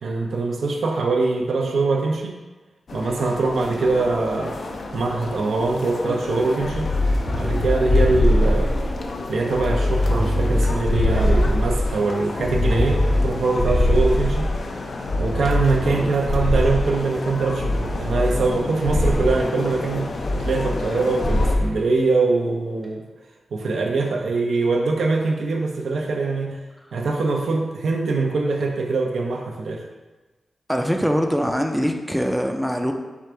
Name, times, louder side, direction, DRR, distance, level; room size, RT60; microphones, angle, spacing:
voice 1, 0.0-2.4 2.9-4.6 4.9-6.9 7.3-8.8 9.3-14.5 15.2-23.0 23.5-26.6 26.9-29.8, right 3 dB, 90° right, 0 dB, 0.6 m, -23 dB
sound 1, 2.9-21.6, left 3 dB, 65° left, 0.5 m, -32 dB
sound 2, 6.6-9.0 9.5-12.0 12.4-14.6 15.1-17.0 17.6-18.6 18.8-19.3 20.2-20.9 21.2-21.7, left 1 dB, 35° left, 0.9 m, -21 dB
voice 2, 30.7-32.9, equal, ahead, 3 dB, 0.4 m, -23 dB
4.7 x 2.5 x 4.5 m, 1.2 s
cardioid pair, 80°, 0 cm